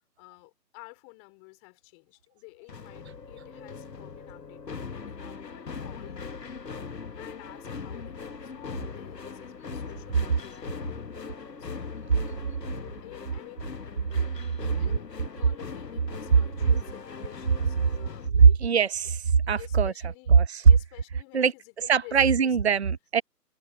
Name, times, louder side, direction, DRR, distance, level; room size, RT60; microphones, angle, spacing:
voice 1, 0.2-6.3 7.2-11.8 12.6-13.7 14.6-18.6 19.6-22.8, left 39 dB, 15° left, 3.9 m, -51 dB
sound 1, 2.7-18.3, left 5 dB, 75° left, 1.4 m, -40 dB
voice 2, 18.6-19.9 20.3-20.6 21.3-21.5 21.9-23.2, right 6 dB, 40° right, 1.0 m, -23 dB
figure-of-eight pair, 150°, 49 cm